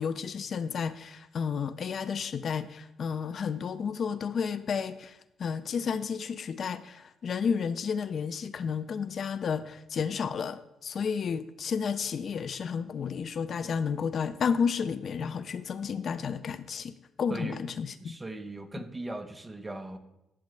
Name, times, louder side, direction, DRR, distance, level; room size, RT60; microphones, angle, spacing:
voice 1, 0.0-18.2, left 6 dB, 55° left, 14 dB, 0.4 m, -32 dB
voice 2, 17.3-17.7 18.0-20.0, right 2 dB, 15° right, 8 dB, 0.9 m, -39 dB
12.0 x 7.5 x 3.3 m, 0.90 s
cardioid pair, 90°, 0 cm